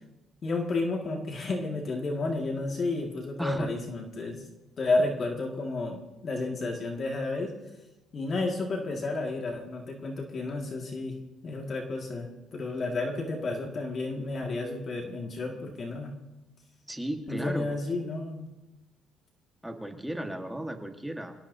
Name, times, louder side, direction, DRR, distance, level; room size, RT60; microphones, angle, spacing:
voice 1, 0.4-4.4 4.8-7.5 8.1-11.2 11.4-16.1 17.3-18.5, left 2 dB, 40° left, 0 dB, 2.1 m, -31 dB
voice 2, 3.4-3.7 16.9-17.7 19.6-21.3, right 1 dB, 5° right, 4 dB, 1.6 m, -34 dB
26.5 x 18.0 x 2.8 m, 1.0 s
cardioid pair, 120°, 0 cm